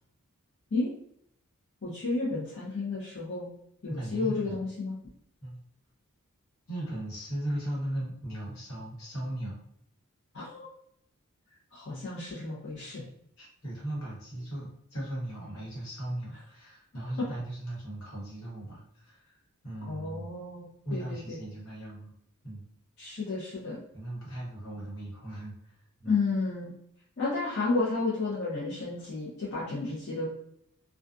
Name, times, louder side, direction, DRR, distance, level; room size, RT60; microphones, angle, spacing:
voice 1, 1.8-3.5 3.8-5.0 10.3-10.7 11.7-13.0 19.9-21.4 23.0-23.8 26.0-26.7 27.2-30.3, left 3 dB, 50° left, -8 dB, 0.7 m, -32 dB
voice 2, 3.9-4.6 5.4-5.6 6.7-9.6 13.4-20.3 20.8-22.1 22.4-22.6 23.9-26.1, right 1 dB, 70° left, -5 dB, 1.3 m, -38 dB
2.3 x 2.3 x 2.5 m, 0.72 s
head